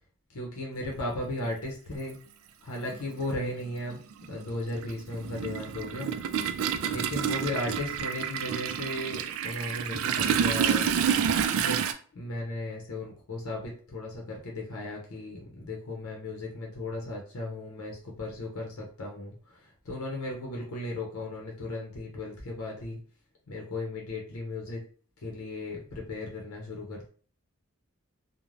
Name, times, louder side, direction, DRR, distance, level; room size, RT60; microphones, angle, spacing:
voice 1, 0.3-2.2 2.6-4.0 4.3-6.1 6.9-10.8 11.5-11.8 12.1-23.0 23.5-24.8 25.2-27.1, left 2 dB, 85° left, -1 dB, 0.6 m, -36 dB
Toilet flush, 1.4-1.5 2.8-3.0 3.3-11.9, right 7 dB, 75° right, 0.3 m, -29 dB
2.5 x 2.1 x 3.1 m, 0.43 s
head